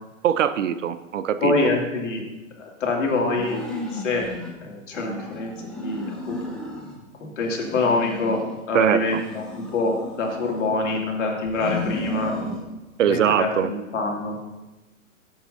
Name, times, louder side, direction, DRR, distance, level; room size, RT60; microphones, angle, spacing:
voice 1, 0.2-1.7 8.7-9.2 13.0-13.7, right 9 dB, 65° right, 12 dB, 0.8 m, -22 dB
voice 2, 1.4-2.2 2.6-3.6 3.9-4.3 4.6-6.5 7.2-12.4 13.0-14.4, left 3 dB, 65° left, -1 dB, 2.7 m, -25 dB
sound 1, 3.3-4.5 4.9-7.0 7.4-8.6 9.0-11.0 11.5-12.6, left 1 dB, ahead, 1.6 m, -34 dB
15.5 x 7.9 x 2.8 m, 1.1 s
hypercardioid pair, 120°, 40 cm